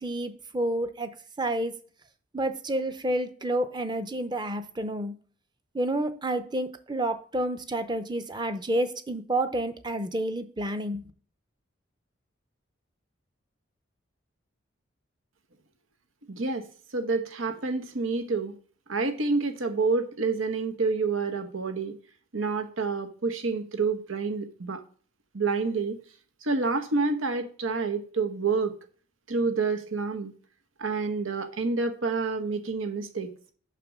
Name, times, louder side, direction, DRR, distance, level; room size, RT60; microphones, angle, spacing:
voice 1, 0.0-1.1 1.4-1.8 2.3-5.1 5.7-11.1, right 1 dB, 20° right, 0.7 m, -29 dB
voice 2, 16.3-16.7 16.9-18.6 18.9-22.0 22.3-24.8 25.3-26.0 26.4-28.7 29.3-30.3 30.8-33.3, right 4 dB, 90° right, 1.1 m, -28 dB
6.8 x 6.0 x 6.1 m
head